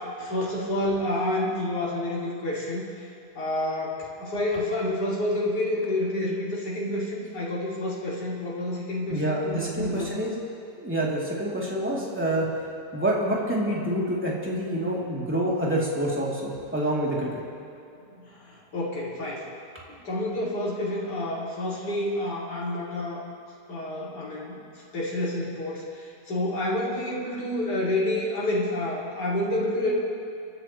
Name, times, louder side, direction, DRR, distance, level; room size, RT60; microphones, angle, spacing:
voice 1, 0.2-2.8 3.3-10.3 18.2-19.4 20.0-23.2 23.7-24.6 24.9-29.9, left 1 dB, 75° left, -6 dB, 3.3 m, -29 dB
voice 2, 9.1-10.3 10.8-12.5 12.9-17.4, right 1 dB, 5° right, -6 dB, 2.9 m, -27 dB
28.5 x 13.0 x 3.1 m, 2.6 s
omnidirectional pair, 1.8 m